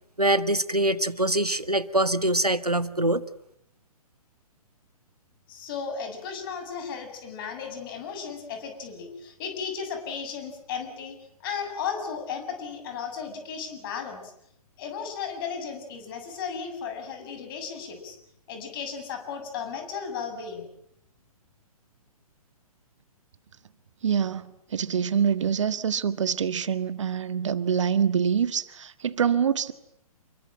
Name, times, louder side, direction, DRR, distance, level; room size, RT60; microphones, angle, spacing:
voice 1, 0.2-3.2, right 1 dB, 90° right, 1.7 m, -24 dB
voice 2, 5.5-11.2 11.4-14.2 14.8-18.2 18.5-20.7, left 6 dB, 35° left, 7.8 m, -35 dB
voice 3, 24.0-29.7, right 7 dB, 50° right, 1.6 m, -25 dB
29.0 x 23.0 x 9.0 m
figure-of-eight pair, 125°, 19 cm